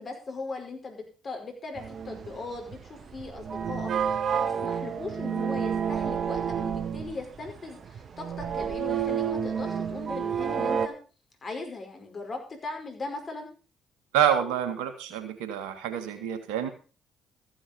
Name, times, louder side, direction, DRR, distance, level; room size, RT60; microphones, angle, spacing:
voice 1, 0.0-10.9 11.4-13.5, left 3 dB, 45° left, 4 dB, 5.2 m, -39 dB
sound 1, 1.8-10.9, right 7 dB, 55° right, 1.3 m, -30 dB
voice 2, 14.1-16.7, right 9 dB, 80° right, 9 dB, 1.8 m, -27 dB
14.5 x 8.6 x 5.4 m, 0.35 s
hypercardioid pair, 50°, 0 cm